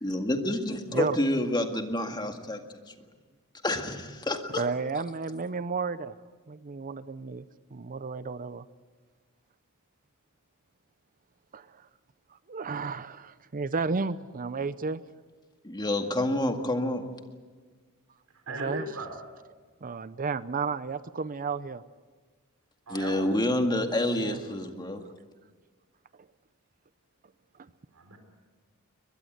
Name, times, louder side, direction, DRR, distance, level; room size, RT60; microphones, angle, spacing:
voice 1, 0.0-2.9 3.6-4.7 15.6-17.1 22.9-25.0, left 1 dB, 20° left, 5 dB, 1.9 m, -28 dB
voice 2, 4.6-6.2 6.5-7.4 7.7-8.6 11.5-11.8 12.5-15.0 18.6-18.8 19.8-21.8 24.1-24.4, right 4 dB, 40° right, 15 dB, 0.6 m, -32 dB
voice 3, 18.3-19.2 22.9-23.4 27.9-28.2, right 2 dB, 70° right, 5 dB, 4.0 m, -38 dB
23.0 x 21.0 x 8.1 m, 1.5 s
head